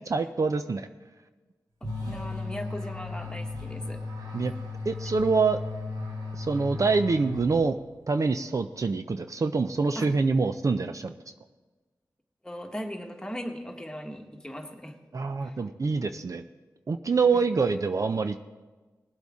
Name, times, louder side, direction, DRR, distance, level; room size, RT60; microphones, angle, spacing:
voice 1, 0.1-0.9 4.3-4.5 4.9-5.6 6.4-7.8 8.1-11.1 15.1-16.4 16.9-18.4, right 4 dB, 50° right, 8 dB, 0.5 m, -25 dB
sound 1, 1.8-7.9, left 3 dB, 80° right, 3.8 m, -36 dB
voice 2, 2.0-4.0 9.9-10.0 12.4-15.0 15.4-15.6 17.3-17.4, equal, 10° left, 2 dB, 1.5 m, -38 dB
19.5 x 8.0 x 3.6 m, 1.3 s
wide cardioid pair, 75°, 7 cm